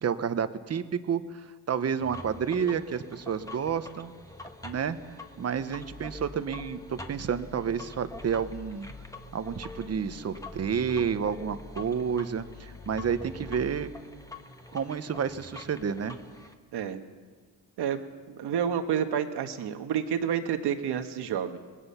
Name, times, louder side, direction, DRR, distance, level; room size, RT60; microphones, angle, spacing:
voice 1, 0.0-4.1 4.6-5.0 5.4-8.9 9.3-13.9 14.7-16.2, right 7 dB, 40° right, 11 dB, 1.1 m, -30 dB
sound 1, 2.0-16.5, left 2 dB, 10° left, 1.4 m, -45 dB
voice 2, 16.7-17.0 17.8-18.0 18.3-21.6, right 8 dB, 75° right, 7 dB, 1.6 m, -29 dB
25.5 x 20.0 x 5.8 m, 1.5 s
cardioid pair, 120°, 40 cm